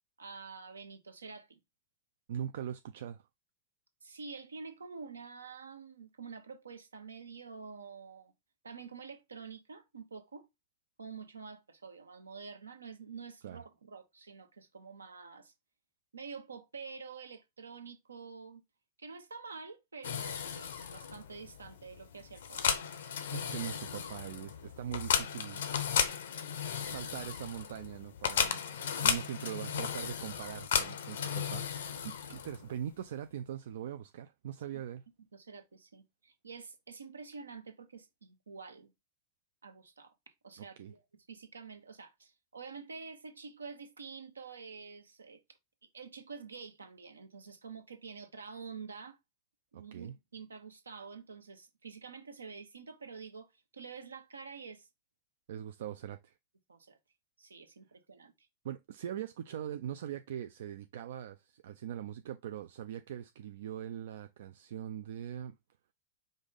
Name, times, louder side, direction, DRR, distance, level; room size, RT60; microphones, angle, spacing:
voice 1, 0.2-1.6 4.0-8.3 8.6-10.5 11.0-15.5 16.1-18.6 19.0-22.8 34.7-34.8 35.3-38.9 39.6-41.0 41.3-45.4 45.8-49.2 49.7-54.9 56.7-57.0 57.4-58.5, right 5 dB, 90° right, 0.9 m, -48 dB
voice 2, 2.3-3.2 13.4-13.6 23.3-25.6 26.8-28.6 29.0-35.0 40.8-40.9 49.7-50.1 55.5-56.3 58.6-65.5, right 10 dB, 70° right, 0.4 m, -41 dB
sound 1, 20.0-32.8, left 7 dB, 75° left, 0.7 m, -35 dB
5.0 x 2.6 x 3.9 m
hypercardioid pair, 95°, 0 cm